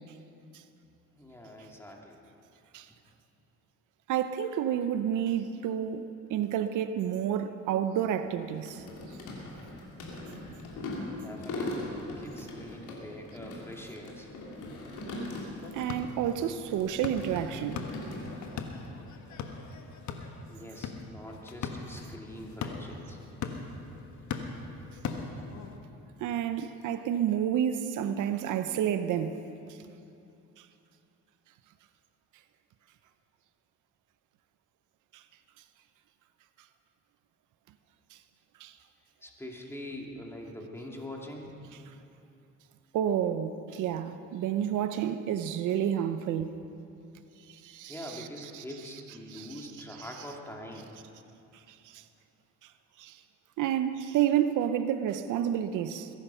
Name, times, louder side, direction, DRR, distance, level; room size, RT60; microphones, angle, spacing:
voice 1, 1.2-2.2 11.1-14.3 20.5-23.5 39.2-41.6 47.9-50.9, left 1 dB, 10° left, 2.5 m, -44 dB
voice 2, 4.1-6.0 6.3-8.8 15.7-17.8 26.2-29.4 35.1-35.2 38.6-38.7 42.9-46.6 47.5-48.3 48.5-48.6 49.3-49.5 51.9-52.0 53.0-53.2 53.6-56.1, right 10 dB, 80° right, 0.7 m, -30 dB
sound 1, 8.1-15.9 16.2-18.5, left 2 dB, 90° left, 3.1 m, -40 dB
sound 2, 15.6-25.8, left 5 dB, 70° left, 1.4 m, -40 dB
21.5 x 11.0 x 5.6 m
cardioid pair, 90°, 30 cm